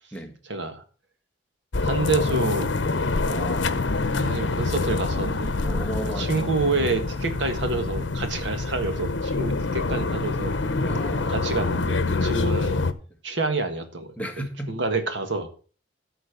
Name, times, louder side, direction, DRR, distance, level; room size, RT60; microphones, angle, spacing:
voice 1, 0.4-0.8 1.8-2.7 4.1-5.5 6.0-10.6 11.3-12.8 13.2-15.5, right 3 dB, 75° right, 1.6 m, -28 dB
sound 1, 1.7-12.9, left 3 dB, 75° left, 0.8 m, -26 dB
voice 2, 3.3-4.0 5.6-6.5 6.8-6.9 10.8-11.6 14.2-14.7, right 1 dB, 10° left, 1.3 m, -35 dB
13.0 x 4.4 x 6.4 m
head